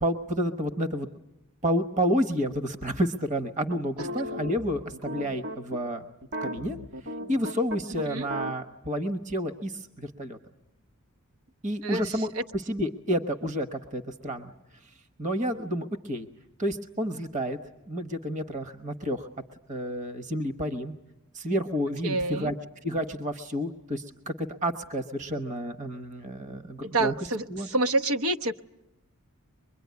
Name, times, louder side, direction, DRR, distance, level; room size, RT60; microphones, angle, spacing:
voice 1, 0.0-1.1 1.6-6.0 6.4-6.8 7.0-10.4 11.6-14.5 14.8-14.9 15.2-16.3 16.6-17.6 17.9-19.3 19.7-21.0 21.3-22.6 22.8-27.1 27.5-27.7, equal, 35° right, 8 dB, 1.1 m, -30 dB
sound 1, 3.7-5.8 6.2-8.5, equal, 50° right, 1.9 m, -36 dB
voice 2, 11.8-12.4 22.0-22.5 26.8-28.6, right 2 dB, 85° right, 6 dB, 1.0 m, -28 dB
24.5 x 22.5 x 9.4 m, 0.89 s
head